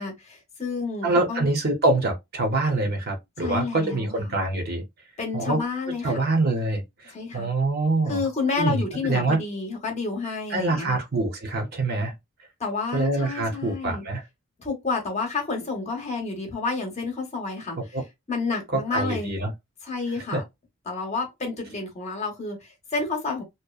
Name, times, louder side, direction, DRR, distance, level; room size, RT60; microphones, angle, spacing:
voice 1, 0.0-1.5 3.4-4.4 5.2-6.2 7.1-7.5 8.1-11.0 12.6-14.0 14.6-17.8 18.3-19.4 19.8-20.4 20.9-23.4, left 4 dB, 30° left, 0.7 m, -30 dB
voice 2, 1.0-4.8 5.3-5.6 6.0-8.2 8.6-9.4 10.5-12.1 12.9-14.2 17.9-18.0 18.7-19.5 20.3-20.4, right 2 dB, 45° right, 0.6 m, -25 dB
2.7 x 2.0 x 2.3 m
head